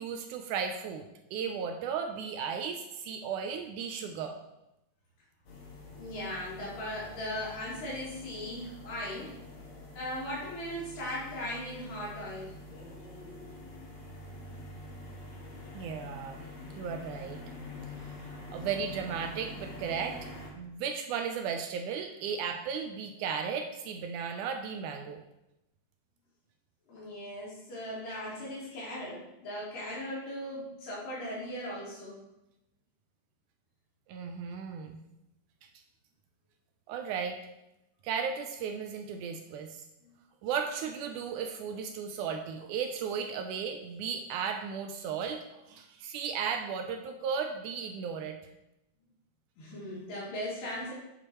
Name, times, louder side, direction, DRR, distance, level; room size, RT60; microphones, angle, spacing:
voice 1, 0.0-4.4 15.7-16.5 16.8-17.4 18.0-18.2 18.5-25.2 34.1-35.0 36.9-37.4 38.0-39.8 40.4-48.4, right 6 dB, 80° right, 5 dB, 1.9 m, -35 dB
sound 1, 5.5-20.5, left 1 dB, 60° left, 2.6 m, -46 dB
voice 2, 6.0-9.3 9.9-12.6 18.6-18.7 26.9-32.2 49.6-50.9, left 1 dB, 75° left, -10 dB, 3.8 m, -38 dB
8.8 x 6.7 x 3.0 m, 0.89 s
omnidirectional pair, 3.9 m